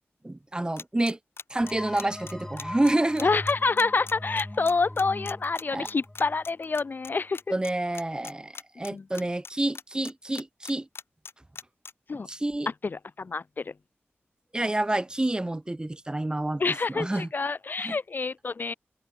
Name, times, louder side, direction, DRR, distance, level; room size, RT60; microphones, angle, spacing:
voice 1, 0.2-1.2 1.5-3.3 5.7-5.9 7.5-10.9 12.3-12.7 14.5-17.3 17.8-18.0, right 1 dB, 20° right, 1.3 m, -28 dB
sound 1, 0.8-7.1 7.3-7.7 7.9-9.5 9.7-11.9, left 5 dB, 70° left, 1.6 m, -41 dB
sound 2, 1.6-7.1, left 1 dB, 15° left, 1.7 m, -40 dB
voice 2, 3.2-7.4 8.9-9.0 12.1-12.3 12.8-13.7 16.6-18.7, left 4 dB, 50° left, 0.4 m, -27 dB
open air
wide cardioid pair, 80°, 4 cm